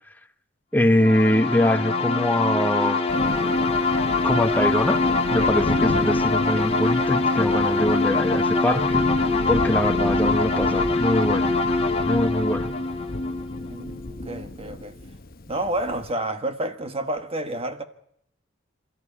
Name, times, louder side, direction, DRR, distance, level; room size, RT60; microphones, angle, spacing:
voice 1, 0.7-3.0 4.2-5.1 5.3-9.1 9.5-11.5 12.0-12.7, left 1 dB, 10° left, 1.1 m, -23 dB
sound 1, 1.0-14.5, left 3 dB, 30° left, 2.0 m, -23 dB
Thunder, 3.1-16.1, left 2 dB, 45° left, 1.0 m, -33 dB
voice 2, 13.7-14.0 14.2-14.9 15.5-17.8, right 1 dB, 30° right, 1.4 m, -29 dB
28.0 x 13.5 x 9.9 m
head